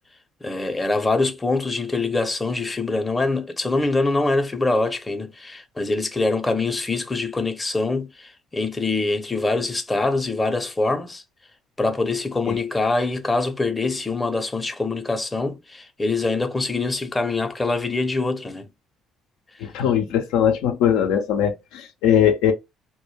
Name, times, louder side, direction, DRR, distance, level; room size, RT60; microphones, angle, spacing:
voice 1, 0.4-11.2 11.8-18.7, left 3 dB, 20° left, 0.6 m, -24 dB
voice 2, 19.6-22.5, left 9 dB, 75° left, 0.4 m, -20 dB
2.2 x 2.1 x 3.1 m
hypercardioid pair, 55°, 0 cm